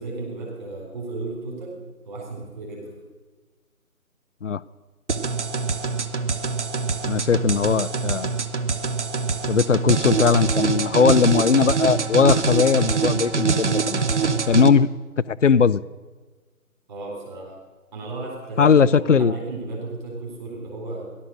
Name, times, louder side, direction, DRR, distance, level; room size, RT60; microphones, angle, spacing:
voice 1, 0.0-1.8 2.1-2.9 16.9-17.6 17.9-21.1, right 3 dB, 30° right, -2 dB, 4.0 m, -34 dB
sound 1, 5.1-14.7, right 5 dB, 50° right, 1.0 m, -24 dB
voice 2, 7.0-8.3 9.5-14.0 14.5-14.9 15.3-15.8 18.6-19.3, left 6 dB, 55° left, 18 dB, 0.5 m, -19 dB
17.0 x 12.0 x 6.4 m, 1.4 s
figure-of-eight pair, 155°, 44 cm